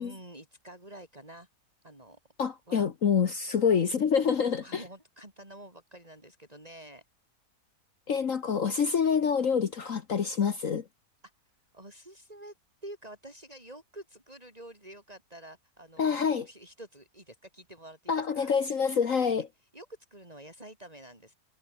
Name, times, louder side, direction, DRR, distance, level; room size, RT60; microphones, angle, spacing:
voice 1, 0.0-1.5 1.8-2.2 2.7-2.9 4.6-7.0 11.7-12.5 12.8-18.5 19.3-21.3, right 1 dB, 20° right, 6.1 m, -48 dB
voice 2, 2.4-4.8 8.1-10.8 16.0-16.4 18.1-19.5, left 6 dB, 55° left, 1.5 m, -26 dB
omnidirectional pair, 1.8 m